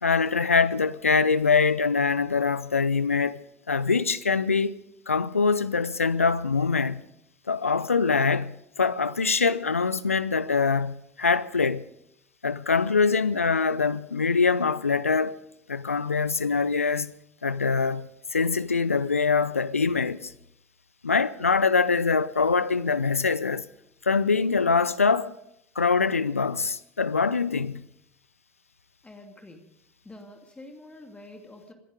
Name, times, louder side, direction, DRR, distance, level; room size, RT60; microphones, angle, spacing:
voice 1, 0.0-3.4 3.7-4.8 5.1-7.0 7.5-11.9 12.4-15.4 15.7-17.1 17.4-20.3 21.0-23.6 24.0-25.3 25.8-27.9, left 5 dB, 90° left, 0.5 m, -24 dB
voice 2, 29.0-29.7 30.0-31.7, left 2 dB, 15° left, 2.5 m, -46 dB
24.5 x 10.5 x 5.1 m
figure-of-eight pair, 65°, 7 cm